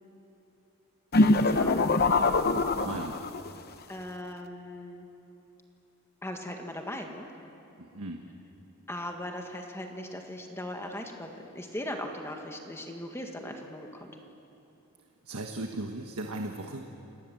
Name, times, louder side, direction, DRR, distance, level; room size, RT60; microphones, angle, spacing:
sound 1, 1.1-3.5, left 2 dB, 45° left, 0.9 m, -23 dB
voice 1, 1.1-1.9 3.9-5.1 6.2-7.3 8.9-14.2, left 1 dB, 10° left, 3 dB, 1.7 m, -39 dB
voice 2, 2.7-3.1 7.9-8.2 15.3-16.8, right 2 dB, 90° right, 3 dB, 1.4 m, -36 dB
29.5 x 18.5 x 7.9 m, 2.9 s
head